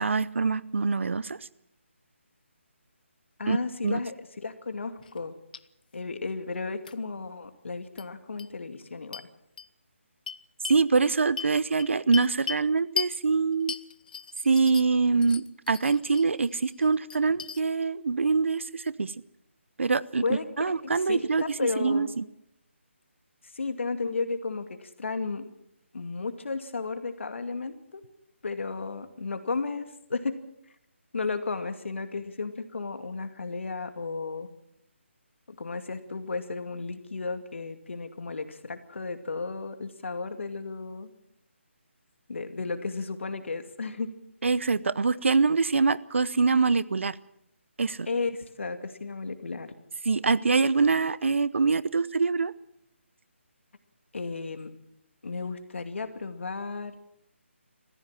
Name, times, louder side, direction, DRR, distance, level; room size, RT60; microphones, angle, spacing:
voice 1, 0.0-1.4 3.5-3.6 3.8-4.0 10.7-13.8 14.4-19.1 19.8-21.5 21.8-22.3 44.4-47.2 47.8-48.1 50.0-52.5, right 4 dB, 70° right, 19 dB, 0.9 m, -24 dB
voice 2, 3.4-4.1 4.4-5.3 5.9-9.2 20.2-20.4 20.8-22.1 23.5-25.4 25.9-28.0 28.4-30.4 31.1-34.5 35.5-41.1 42.3-44.1 48.1-49.7 54.1-54.7 55.2-56.9, left 4 dB, 65° left, 8 dB, 2.4 m, -33 dB
sound 1, 5.0-5.2 5.5-5.6 6.8-6.9 8.0-8.1 8.4-8.5 9.1-9.2 9.6-9.7 10.3-10.8 11.4-12.7 13.0-13.1 13.7-15.0 15.2-16.3 16.7-17.6, left 6 dB, 40° left, 0.7 m, -36 dB
23.0 x 15.0 x 7.5 m, 0.80 s
figure-of-eight pair, 165°, 7 cm